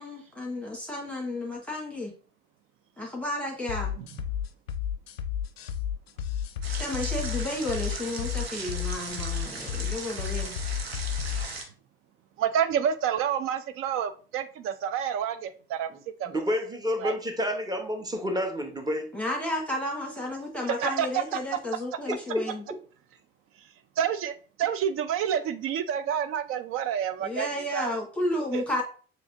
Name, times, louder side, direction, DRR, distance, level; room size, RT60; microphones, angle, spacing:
voice 1, 0.0-2.1 3.0-3.9 6.8-10.6 19.1-22.6 27.2-28.8, left 1 dB, 5° left, -2 dB, 1.5 m, -32 dB
sound 1, 3.7-11.7, left 9 dB, 80° left, 0.5 m, -32 dB
sound 2, 6.6-11.6, right 4 dB, 90° right, 0.7 m, -38 dB
voice 2, 12.4-15.9 16.2-16.3 17.0-17.1 20.8-21.1 21.3-21.4 24.0-27.9 28.5-28.8, right 9 dB, 45° right, 12 dB, 0.5 m, -29 dB
voice 3, 15.9-19.1 22.0-22.8, left 1 dB, 15° right, 5 dB, 1.0 m, -30 dB
6.9 x 3.0 x 2.6 m, 0.39 s
figure-of-eight pair, 60°, 30 cm